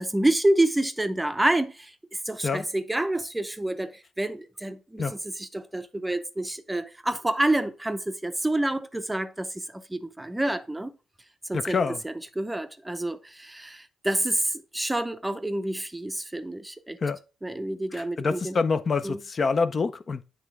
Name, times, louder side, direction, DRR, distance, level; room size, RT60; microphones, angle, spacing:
voice 1, 0.0-11.0 11.5-11.8 12.0-17.0 17.4-18.6 19.0-19.2, right 1 dB, 10° right, 0.6 m, -28 dB
voice 2, 11.5-12.0 17.0-17.2 17.9-20.2, left 4 dB, 40° left, 0.5 m, -26 dB
8.1 x 3.3 x 4.7 m
cardioid pair, 90°, 0 cm